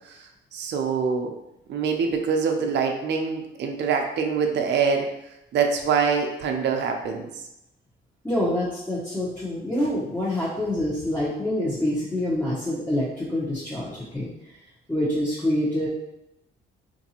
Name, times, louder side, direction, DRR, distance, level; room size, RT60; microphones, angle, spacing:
voice 1, 0.5-1.3 1.7-5.1 5.5-7.3, right 5 dB, 60° right, 3 dB, 0.5 m, -24 dB
voice 2, 8.2-14.3 14.9-15.9, left 1 dB, 10° left, -9 dB, 0.9 m, -26 dB
3.9 x 2.6 x 2.8 m, 0.88 s
cardioid pair, 90°, 20 cm